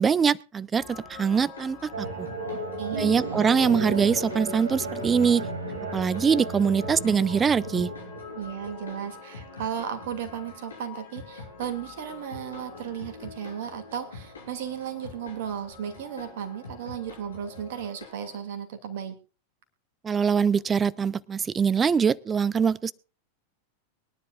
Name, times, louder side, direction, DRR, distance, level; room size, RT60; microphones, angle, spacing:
voice 1, 0.0-2.3 3.0-5.5 5.9-7.9 20.0-22.9, right 6 dB, 20° right, 0.5 m, -23 dB
sound 1, 0.8-18.4, left 4 dB, 70° left, 5.0 m, -45 dB
sound 2, 1.9-9.9, right 2 dB, 70° right, 2.6 m, -34 dB
voice 2, 8.3-19.2, right 8 dB, 50° right, 2.4 m, -35 dB
23.0 x 10.5 x 2.4 m
figure-of-eight pair, 90°, 0 cm